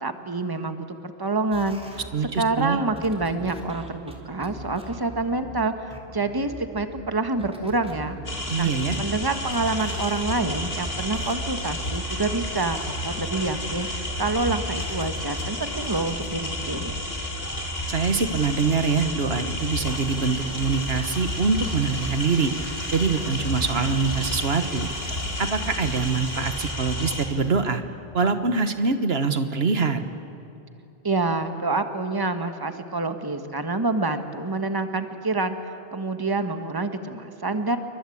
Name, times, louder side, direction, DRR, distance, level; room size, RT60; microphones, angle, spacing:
voice 1, 0.0-2.0 2.4-8.1 8.6-8.7 9.0-17.0 31.0-37.8, right 3 dB, 20° right, 8 dB, 1.5 m, -27 dB
sound 1, 1.5-17.1 17.5-19.1, equal, 5° right, 3.6 m, -42 dB
voice 2, 2.1-2.8 8.5-9.0 17.9-22.5 22.9-24.9 25.4-27.8 28.1-30.0, right 4 dB, 75° right, 9 dB, 1.6 m, -24 dB
sound 2, 8.3-27.3, left 1 dB, 75° left, 3.9 m, -31 dB
sound 3, 11.8-26.7, equal, 10° left, 3.5 m, -45 dB
29.0 x 24.0 x 8.6 m, 2.9 s
omnidirectional pair, 1.0 m